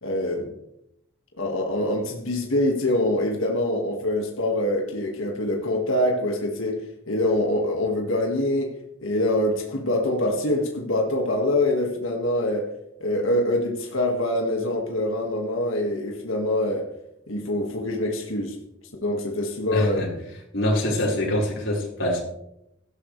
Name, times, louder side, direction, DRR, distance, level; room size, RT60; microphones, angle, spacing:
voice 1, 0.0-0.5 1.4-8.7 9.0-12.7 13.0-16.9 17.3-18.6 19.0-20.0, left 1 dB, 85° left, 1 dB, 2.0 m, -25 dB
voice 2, 19.7-20.1 20.5-22.2, left 1 dB, 65° left, -3 dB, 5.1 m, -24 dB
16.5 x 14.0 x 3.3 m, 0.81 s
head